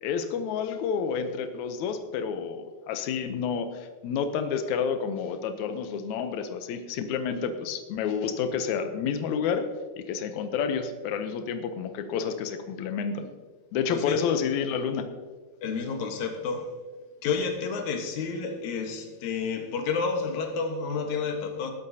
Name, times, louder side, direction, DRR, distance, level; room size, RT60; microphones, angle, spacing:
voice 1, 0.0-9.7 10.0-13.3 13.7-15.1, left 6 dB, 85° left, 8 dB, 1.6 m, -29 dB
voice 2, 15.6-16.7 17.2-21.7, left 5 dB, 60° left, 4 dB, 2.3 m, -30 dB
19.0 x 12.0 x 2.8 m, 1.4 s
omnidirectional pair, 4.4 m